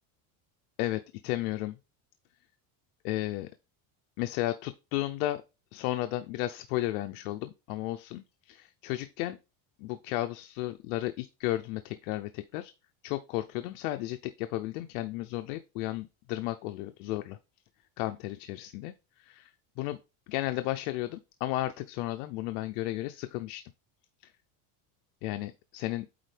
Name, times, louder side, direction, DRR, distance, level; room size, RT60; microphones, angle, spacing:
voice 1, 0.8-1.8 3.0-3.5 4.2-5.4 5.7-9.4 9.8-12.7 13.0-17.4 18.0-18.9 19.2-19.5 19.8-20.0 20.3-23.7 25.2-26.1, left 16 dB, 85° left, 0.7 m, -33 dB
8.8 x 4.1 x 3.4 m
cardioid pair, 145°, 43 cm